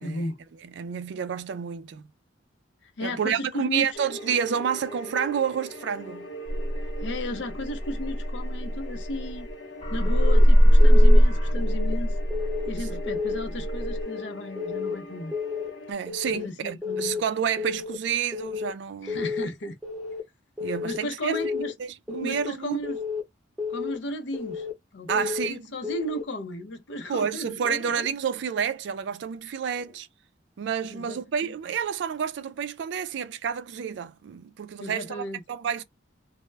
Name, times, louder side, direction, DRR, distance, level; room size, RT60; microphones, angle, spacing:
voice 1, 0.0-0.4 2.8-3.9 7.0-9.5 9.9-12.1 12.7-15.3 16.3-17.2 19.0-19.8 20.7-21.7 22.1-23.0 23.7-24.7 24.9-28.1 30.9-31.5 34.8-35.4, left 1 dB, 70° left, 0.5 m, -35 dB
voice 2, 0.6-2.0 3.0-6.3 12.9-13.0 15.9-19.2 20.6-21.4 21.8-22.8 25.1-25.7 27.1-30.1 30.6-35.8, right 7 dB, 65° right, 0.3 m, -29 dB
sound 1, 3.9-15.9, equal, 85° left, 0.9 m, -41 dB
sound 2, 6.5-9.5 9.8-14.0, equal, 30° left, 1.0 m, -20 dB
Keyboard (musical) / Alarm, 10.1-10.4 10.8-11.2 11.6-11.9 12.3-12.7 13.1-13.4 13.8-14.2 14.6-14.9 15.3-15.7 16.1-16.4 16.8-17.2 17.6-18.0 18.3-18.7 19.1-19.5 19.8-20.2 20.6-21.0 21.3-21.7 22.1-22.5 22.8-23.2 23.6-24.0 24.3-24.7 25.1-25.5 25.8-26.2, left 5 dB, ahead, 0.7 m, -32 dB
2.1 x 2.0 x 3.2 m
head